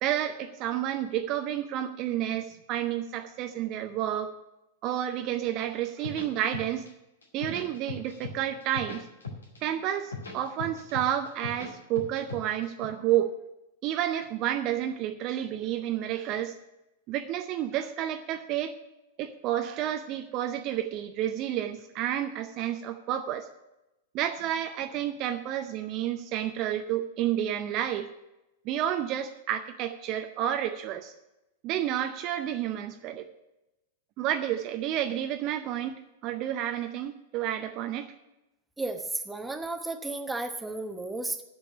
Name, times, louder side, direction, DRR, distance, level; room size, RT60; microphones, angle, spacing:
voice 1, 0.0-4.4 4.8-6.9 7.3-9.0 9.6-13.3 13.8-16.6 17.1-18.7 19.2-23.5 24.1-28.1 28.7-31.1 31.6-33.3 34.2-38.1, right 11 dB, 40° right, 8 dB, 0.6 m, -30 dB
sound 1, 5.8-6.9 7.2-8.3 8.6-9.6 9.9-11.7 11.9-12.9, left 4 dB, 75° left, 2.3 m, -38 dB
voice 2, 38.8-41.4, right 2 dB, 5° right, 6 dB, 1.0 m, -33 dB
9.1 x 6.9 x 8.8 m, 0.96 s
figure-of-eight pair, 95°, 0 cm